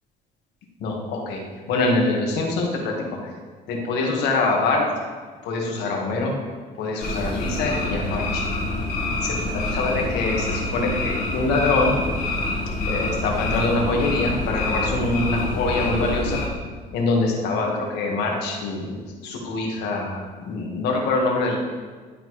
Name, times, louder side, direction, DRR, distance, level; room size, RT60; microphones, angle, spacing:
voice 1, 0.8-1.4 1.7-2.9 3.2-3.3 3.7-4.8 5.4-6.4 6.8-8.4 9.2-12.0 12.8-16.4 16.9-21.6, left 3 dB, 85° left, 0 dB, 1.5 m, -24 dB
sound 1, 7.0-16.5, left 2 dB, 60° left, 1.5 m, -26 dB
11.5 x 4.0 x 3.1 m, 1.5 s
cardioid pair, 110°, 17 cm